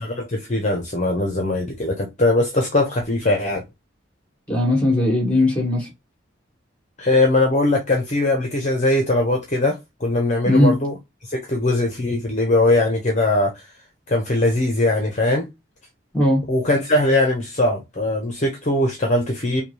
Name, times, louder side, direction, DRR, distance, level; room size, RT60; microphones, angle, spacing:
voice 1, 0.0-3.6 7.0-10.9 11.3-13.5 14.1-15.5 16.5-19.6, left 2 dB, 35° left, 0.8 m, -20 dB
voice 2, 4.5-5.9 10.4-10.7 16.1-16.4, left 1 dB, 5° left, 2.4 m, -18 dB
5.6 x 2.3 x 3.2 m
head